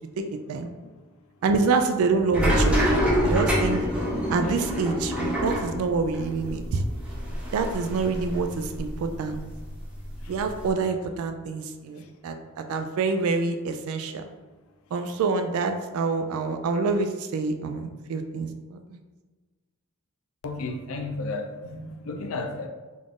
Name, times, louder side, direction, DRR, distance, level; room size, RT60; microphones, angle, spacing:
voice 1, 0.2-0.7 1.4-3.8 4.3-6.8 7.5-9.4 10.3-14.3 14.9-19.0, right 4 dB, 65° right, 7 dB, 0.3 m, -27 dB
sound 1, 2.3-9.1 9.4-10.7, equal, 5° right, 0.6 m, -26 dB
voice 2, 20.4-22.7, left 3 dB, 65° left, 4 dB, 0.5 m, -33 dB
3.8 x 2.4 x 3.5 m, 1.3 s
head